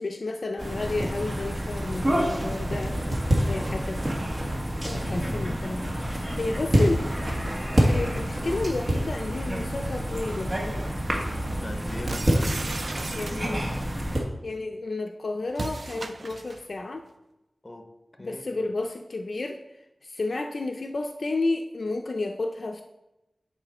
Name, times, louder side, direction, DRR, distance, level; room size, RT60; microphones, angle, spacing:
voice 1, 0.0-3.1 3.4-4.2 4.8-7.1 7.9-10.8 13.1-13.7 14.4-17.0 18.2-19.6 20.0-22.8, left 2 dB, 60° left, 0.5 m, -31 dB
sound 1, 0.6-14.2, equal, 35° right, 1.4 m, -27 dB
voice 2, 3.5-3.8 11.5-12.6 17.6-18.6, left 1 dB, 25° left, 0.9 m, -41 dB
sound 2, 5.0-8.2, equal, 5° left, 2.4 m, -40 dB
sound 3, 12.1-13.8 15.5-16.7, right 3 dB, 60° right, 0.4 m, -35 dB
9.0 x 4.4 x 4.3 m
wide cardioid pair, 85°, 0 cm